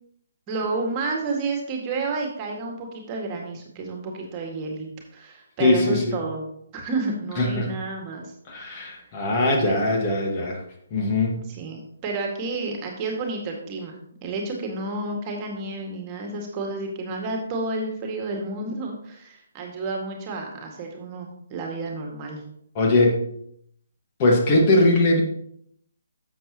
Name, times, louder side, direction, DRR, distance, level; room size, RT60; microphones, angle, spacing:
voice 1, 0.5-6.5 6.7-8.3 8.5-8.9 9.7-10.0 11.3-13.9 14.2-22.4, right 3 dB, 25° right, 1 dB, 1.9 m, -31 dB
voice 2, 5.6-6.2 7.4-7.7 8.5-10.6 10.9-11.5 22.8-23.2 24.2-25.2, left 2 dB, 30° left, 1 dB, 1.7 m, -20 dB
12.0 x 7.5 x 3.0 m, 0.69 s
figure-of-eight pair, 135°, 0 cm